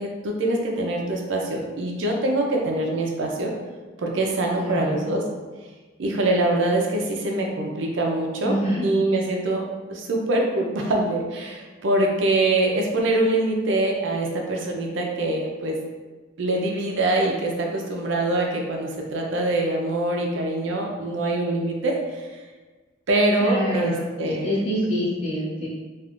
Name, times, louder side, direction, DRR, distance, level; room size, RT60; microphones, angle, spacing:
voice 1, 0.0-3.5 4.0-5.2 6.0-8.6 8.8-9.6 9.9-15.8 16.4-22.3 23.1-24.6, right 2 dB, 65° right, 0 dB, 0.5 m, -24 dB
voice 2, 4.6-5.1 8.4-8.8 23.4-25.7, equal, 30° left, -9 dB, 1.1 m, -26 dB
3.5 x 2.4 x 2.4 m, 1.3 s
head